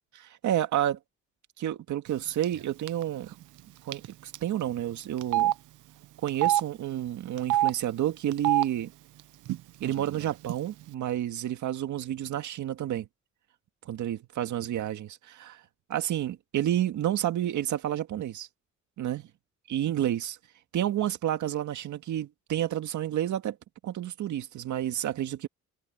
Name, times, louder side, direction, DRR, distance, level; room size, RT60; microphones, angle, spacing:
voice 1, 0.2-1.0 1.6-3.3 3.9-5.5 6.2-8.9 9.8-13.1 13.9-15.6 15.9-18.5 19.0-19.2 19.7-20.4 20.7-23.6 23.8-25.5, right 11 dB, 75° right, 2.0 m, -30 dB
Telephone, 2.4-2.6 2.9-3.0 3.9-4.1 4.3-4.4 5.2-5.5 6.3-6.6 7.4-7.7 8.3-8.6 9.5-9.6 9.8-10.5, right 14 dB, 90° right, 1.0 m, -25 dB
cardioid pair, 90°, 30 cm